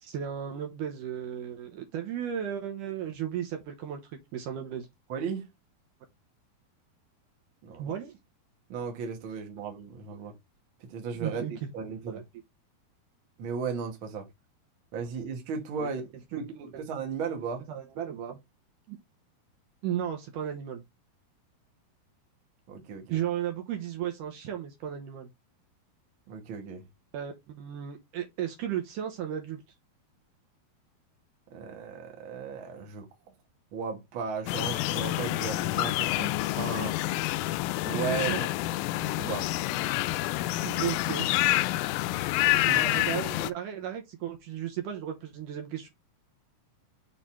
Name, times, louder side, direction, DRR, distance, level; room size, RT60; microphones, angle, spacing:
voice 1, 0.0-4.9 7.8-8.2 10.3-10.4 11.2-11.7 12.1-12.2 15.8-15.9 16.3-16.4 16.7-16.8 17.7-18.4 18.9-19.0 19.8-20.8 23.1-25.3 27.1-29.6 37.9-38.4 40.6-41.3 42.7-45.9, right 10 dB, 70° right, 2.3 m, -35 dB
voice 2, 5.1-5.5 7.6-7.9 8.7-10.3 10.8-12.2 13.4-14.3 14.9-16.0 16.4-17.6 22.7-23.2 26.3-26.8 31.5-33.1 33.7-37.0 37.8-38.7 39.0-39.5 42.6-42.8, right 5 dB, 50° right, 1.6 m, -36 dB
sound 1, 34.5-43.5, left 17 dB, 80° left, 2.2 m, -28 dB
6.5 x 3.9 x 4.4 m
omnidirectional pair, 4.5 m